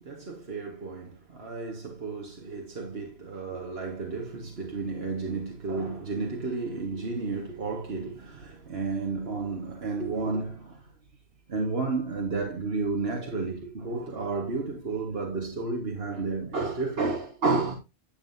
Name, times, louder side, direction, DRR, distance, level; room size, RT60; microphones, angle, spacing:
voice 1, 0.0-10.8 11.5-17.8, right 3 dB, 75° right, 2.0 m, -32 dB
11.0 x 7.7 x 2.7 m
omnidirectional pair, 1.0 m